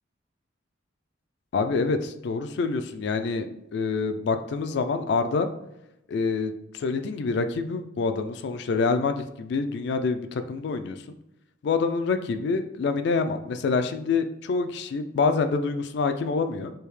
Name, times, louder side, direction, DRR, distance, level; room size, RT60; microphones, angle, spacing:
voice 1, 1.5-3.5 3.7-5.5 6.1-11.0 11.6-16.7, left 4 dB, 60° left, 9 dB, 0.3 m, -26 dB
3.4 x 2.7 x 3.2 m, 0.86 s
head